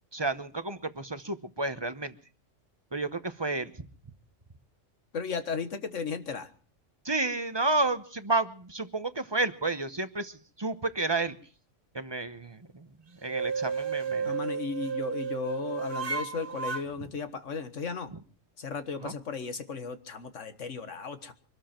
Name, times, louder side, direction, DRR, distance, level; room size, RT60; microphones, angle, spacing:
voice 1, 0.1-2.1 2.9-3.7 7.0-11.4 11.9-12.9 13.2-14.4 18.1-18.2 19.0-19.1, right 2 dB, 25° right, 11 dB, 0.8 m, -31 dB
voice 2, 5.1-6.5 14.2-18.1 18.6-21.3, left 5 dB, 75° left, 9 dB, 1.8 m, -35 dB
sound 1, 13.3-16.8, right 6 dB, 45° right, 1.5 m, -32 dB
24.5 x 13.0 x 4.4 m, 0.43 s
omnidirectional pair, 1.3 m